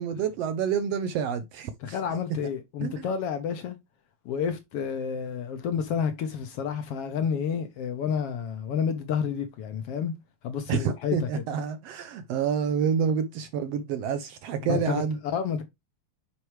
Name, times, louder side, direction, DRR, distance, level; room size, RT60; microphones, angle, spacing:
voice 1, 0.0-2.0 2.8-3.1 10.7-15.2, right 7 dB, 75° right, 1.5 m, -28 dB
voice 2, 1.8-3.8 4.2-10.1 10.4-11.4 14.7-15.0 15.3-15.6, left 7 dB, 65° left, 1.7 m, -30 dB
9.5 x 4.6 x 3.2 m
omnidirectional pair, 3.3 m